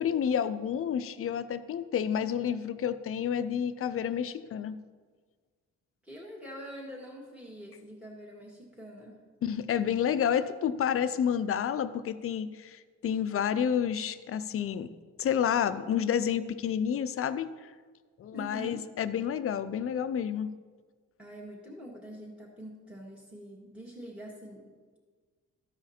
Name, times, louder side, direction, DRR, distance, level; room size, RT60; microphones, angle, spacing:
voice 1, 0.0-4.8 9.4-14.9 15.2-17.5 18.2-20.5, left 8 dB, 45° left, 12 dB, 0.6 m, -29 dB
voice 2, 6.0-9.2 18.3-18.8 21.2-25.0, right 1 dB, 5° right, -3 dB, 1.7 m, -45 dB
14.0 x 4.8 x 4.3 m, 1.5 s
cardioid pair, 90°, 30 cm